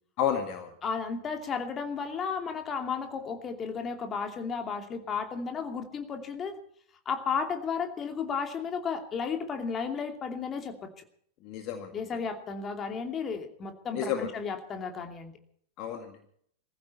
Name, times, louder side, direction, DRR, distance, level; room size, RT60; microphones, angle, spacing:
voice 1, 0.2-0.7 11.4-11.9 13.9-14.3 15.8-16.3, left 9 dB, 40° left, 5 dB, 2.0 m, -31 dB
voice 2, 0.8-6.6 7.0-10.9 11.9-15.3, left 5 dB, 25° left, 5 dB, 2.7 m, -33 dB
22.0 x 15.0 x 4.3 m, 0.64 s
figure-of-eight pair, 90°, 0 cm